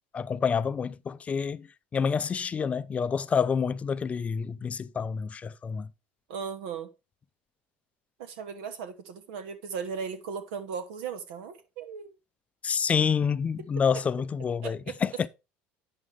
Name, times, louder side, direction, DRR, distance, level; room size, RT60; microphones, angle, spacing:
voice 1, 0.1-5.9 12.6-15.3, left 6 dB, 25° left, 0.4 m, -28 dB
voice 2, 6.3-6.9 8.2-12.1 14.6-15.0, right 6 dB, 85° right, 1.2 m, -37 dB
8.6 x 6.3 x 3.4 m
supercardioid pair, 110°, 5 cm